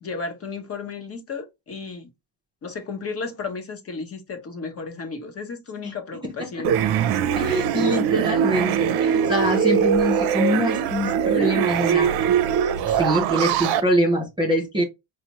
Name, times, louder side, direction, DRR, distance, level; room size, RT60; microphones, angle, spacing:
voice 1, 0.0-2.1 2.6-7.0, left 4 dB, 30° left, 0.8 m, -34 dB
sound 1, 6.6-13.8, right 8 dB, 60° right, 0.6 m, -22 dB
voice 2, 7.4-12.1 12.9-14.8, equal, 10° right, 0.5 m, -24 dB
4.2 x 2.1 x 2.8 m
cardioid pair, 125°, 44 cm